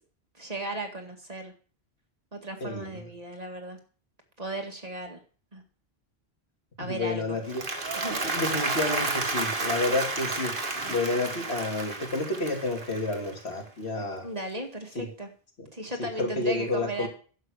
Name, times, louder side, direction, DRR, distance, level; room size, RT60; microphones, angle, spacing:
voice 1, 0.3-1.5 2.3-3.8 4.4-5.2 5.5-5.6 6.8-7.4 8.0-8.2 14.2-15.3 15.7-17.1, right 1 dB, 40° right, 3 dB, 2.1 m, -36 dB
voice 2, 2.6-3.0 6.8-7.6 8.1-10.5 10.9-14.2 14.9-15.1 16.0-17.1, left 2 dB, 85° left, 1 dB, 3.1 m, -30 dB
Applause, 7.3-13.7, right 3 dB, 55° right, 1.9 m, -31 dB
11.5 x 7.8 x 6.5 m, 0.40 s
omnidirectional pair, 1.1 m